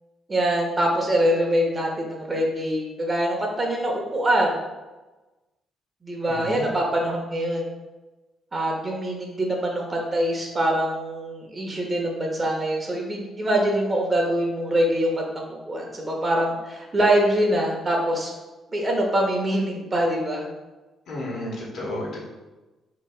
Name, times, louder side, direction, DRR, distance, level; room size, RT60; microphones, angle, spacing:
voice 1, 0.3-4.6 6.0-7.6 8.5-18.3 18.7-20.5, right 1 dB, 25° right, 0 dB, 0.9 m, -24 dB
voice 2, 6.2-6.7 21.1-22.2, left 1 dB, 70° left, -3 dB, 1.3 m, -32 dB
3.0 x 2.9 x 4.4 m, 1.1 s
cardioid pair, 90°, 0 cm